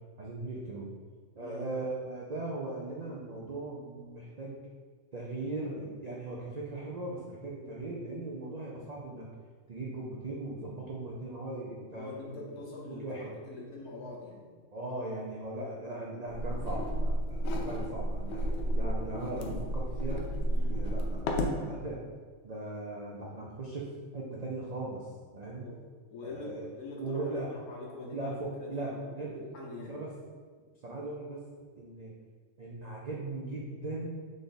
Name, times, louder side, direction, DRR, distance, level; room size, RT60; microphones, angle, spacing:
voice 1, 0.2-0.9 1.4-4.6 5.1-9.3 9.7-12.4 12.8-13.3 14.7-17.4 17.6-20.2 20.7-22.0 22.4-25.7 26.2-26.7 27.0-27.5 28.1-29.4 29.9-30.1 30.8-31.4 31.8-32.2 32.6-34.2, right 2 dB, 80° right, -4 dB, 0.3 m, -39 dB
voice 2, 11.9-14.5 20.5-20.8 25.6-25.8 26.1-30.0, left 2 dB, 85° left, -3 dB, 1.4 m, -44 dB
sound 1, 16.3-21.6, equal, 65° left, 0.7 m, -31 dB
3.8 x 3.4 x 3.9 m, 1.5 s
omnidirectional pair, 1.5 m